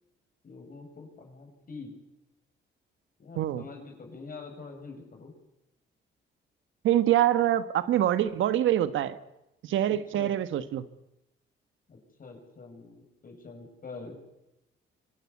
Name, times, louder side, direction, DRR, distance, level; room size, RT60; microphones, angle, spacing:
voice 1, 0.4-1.9 3.2-5.3 9.9-10.4 11.9-14.2, left 4 dB, 45° left, 3 dB, 7.8 m, -45 dB
voice 2, 3.3-3.6 6.8-9.2 9.6-10.9, right 12 dB, 80° right, 12 dB, 1.3 m, -25 dB
25.0 x 17.5 x 8.6 m, 0.90 s
cardioid pair, 90°, 20 cm